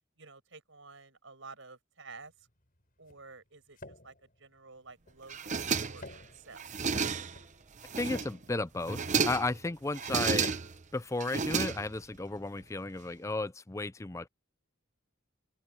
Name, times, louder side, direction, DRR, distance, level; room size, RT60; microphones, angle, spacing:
voice 1, 0.2-2.5 3.0-6.7, right 4 dB, 60° right, 7.8 m, -52 dB
sound 1, 2.1-11.9, left 2 dB, 40° left, 7.0 m, -54 dB
sound 2, 5.3-6.2 6.6-7.4 7.8-8.4 8.8-9.6 9.9-10.8 11.2-12.2, right 5 dB, 35° right, 0.9 m, -32 dB
voice 2, 8.0-10.5 10.9-14.3, left 2 dB, 15° left, 0.4 m, -34 dB
open air
head